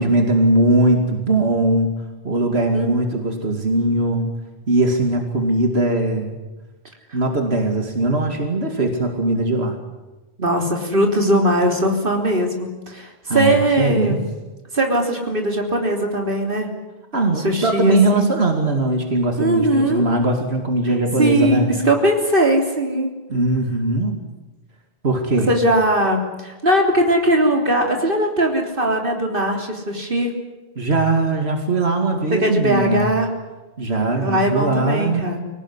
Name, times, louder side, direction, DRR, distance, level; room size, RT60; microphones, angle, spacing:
voice 1, 0.0-1.9 2.2-4.3 4.7-6.4 7.1-9.8 13.3-14.2 17.1-21.7 23.3-24.2 25.0-25.5 30.8-33.1 33.8-35.3, right 2 dB, 85° right, 3 dB, 2.7 m, -20 dB
voice 2, 10.4-14.2 14.7-16.7 17.4-18.3 19.4-20.0 21.2-23.1 25.5-30.3 32.4-33.3 34.2-35.4, right 1 dB, 55° right, 2 dB, 3.6 m, -19 dB
24.5 x 18.5 x 9.9 m, 1.1 s
omnidirectional pair, 1.0 m